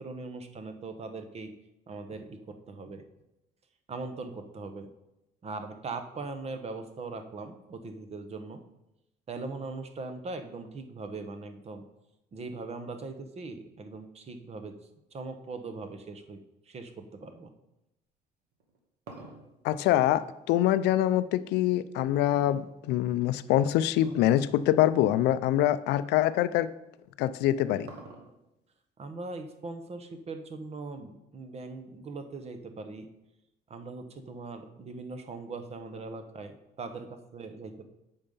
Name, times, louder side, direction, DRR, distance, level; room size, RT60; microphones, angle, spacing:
voice 1, 0.0-1.5 1.9-3.0 3.9-4.9 5.4-8.6 9.3-11.8 12.3-14.8 15.1-16.4 16.7-17.5 29.0-33.1 33.7-37.9, right 3 dB, 40° right, 7 dB, 1.0 m, -40 dB
sound 1, 18.5-21.0 22.4-23.2 24.0-24.4 24.7-24.8 25.6-25.7 27.1-28.6, right 3 dB, 85° right, 2.0 m, -48 dB
voice 2, 19.6-26.7 27.2-27.9, left 13 dB, 85° left, 14 dB, 0.4 m, -25 dB
8.7 x 5.6 x 5.4 m, 0.90 s
cardioid pair, 110°, 17 cm